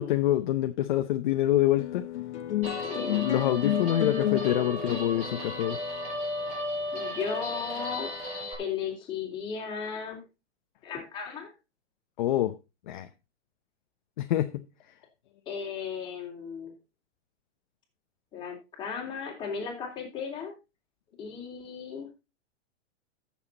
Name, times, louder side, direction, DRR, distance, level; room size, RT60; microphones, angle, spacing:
voice 1, 0.0-2.1 3.1-5.8 12.2-12.6 12.9-13.1 14.2-14.7, left 13 dB, 40° left, 0.7 m, -26 dB
sound 1, 1.8-8.4, left 13 dB, 70° left, 1.4 m, -32 dB
Guitar, 2.6-8.5, equal, 20° right, 4.7 m, -35 dB
voice 2, 2.8-3.3 6.9-8.1 8.6-10.2 10.8-11.5 15.5-16.7 18.3-20.5 21.2-22.1, left 6 dB, 15° left, 3.4 m, -35 dB
13.0 x 7.3 x 4.1 m
supercardioid pair, 170°, 36 cm